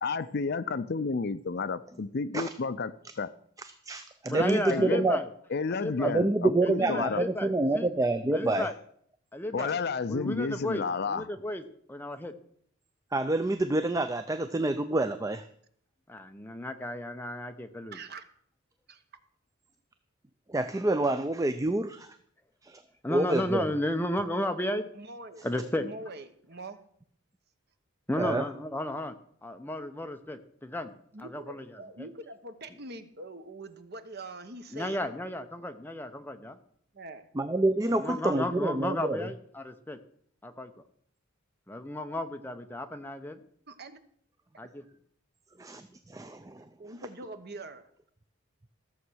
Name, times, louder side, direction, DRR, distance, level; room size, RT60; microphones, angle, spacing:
voice 1, 0.0-3.3 4.7-5.1 5.5-7.2 9.5-11.3, left 4 dB, 50° left, 0.5 m, -31 dB
voice 2, 3.6-5.2 6.0-8.7 13.1-15.4 20.5-22.2 22.6-22.8 23.1-23.7 28.2-28.4 37.4-39.3 45.6-46.7, right 2 dB, 15° right, 0.4 m, -27 dB
voice 3, 4.3-5.3 5.7-6.1 6.6-7.9 8.3-8.8 9.3-9.8 10.1-11.6 11.9-12.3 16.1-18.0 23.0-24.9 25.4-25.9 28.1-29.2 29.4-30.9 31.2-32.1 34.7-36.6 37.9-40.0 40.4-40.7 41.7-43.4 44.6-44.8, left 1 dB, 10° left, 0.8 m, -34 dB
voice 4, 17.9-18.2 18.9-19.0 24.9-25.5 25.7-26.8 31.1-35.0 36.9-37.3 43.7-44.0 44.5-44.7 46.8-47.9, right 2 dB, 50° right, 1.0 m, -43 dB
14.5 x 7.1 x 6.3 m
head